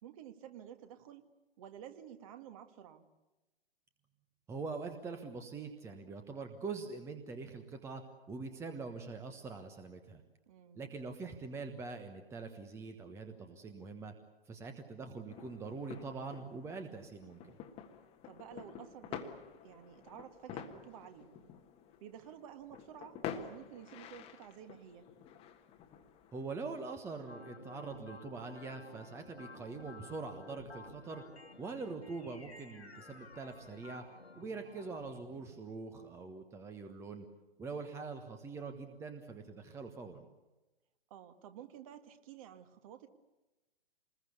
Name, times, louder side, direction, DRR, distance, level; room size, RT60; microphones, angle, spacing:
voice 1, 0.0-1.2 1.6-3.0 10.5-10.8 18.2-19.3 19.6-21.3 22.0-25.1 35.3-35.6 41.1-43.1, right 10 dB, 35° right, 8 dB, 1.9 m, -52 dB
voice 2, 4.5-10.2 10.7-14.1 14.5-17.6 26.3-31.2 31.6-34.0 34.4-37.2 37.6-40.2, right 4 dB, 10° right, 7 dB, 1.2 m, -44 dB
sound 1, 15.3-26.4, left 8 dB, 20° left, 1.5 m, -49 dB
sound 2, 27.3-35.2, left 3 dB, 80° left, 2.0 m, -53 dB
26.5 x 21.0 x 8.3 m, 1.1 s
figure-of-eight pair, 120°, 31 cm